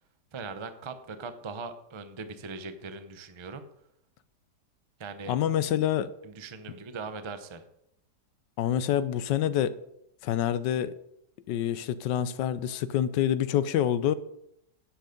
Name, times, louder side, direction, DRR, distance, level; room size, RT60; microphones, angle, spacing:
voice 1, 0.3-3.7 5.0-5.4 6.2-7.6, right 4 dB, 40° right, 9 dB, 0.4 m, -40 dB
voice 2, 5.3-6.1 8.6-9.8 10.2-10.9 11.5-14.1, left 10 dB, 90° left, 14 dB, 1.3 m, -27 dB
10.0 x 7.8 x 5.2 m, 0.76 s
omnidirectional pair, 1.9 m